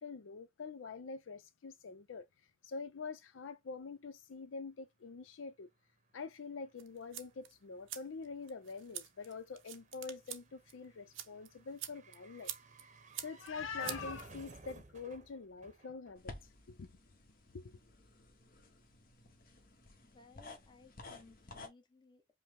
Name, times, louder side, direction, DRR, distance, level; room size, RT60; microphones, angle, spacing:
voice 1, 0.0-2.2 2.6-5.7 6.1-12.5 13.2-16.3 16.7-16.9 17.5-17.8, left 4 dB, 80° left, 0.5 m, -45 dB
sound 1, 5.9-6.0 6.2-16.6 16.8-16.9, right 3 dB, 40° right, 0.8 m, -56 dB
sound 2, 6.8-14.7, right 11 dB, 80° right, 0.7 m, -49 dB
sound 3, 16.2-21.7, left 2 dB, 50° left, 1.0 m, -54 dB
voice 2, 20.0-22.3, left 3 dB, 25° left, 0.9 m, -61 dB
5.4 x 2.0 x 3.4 m
head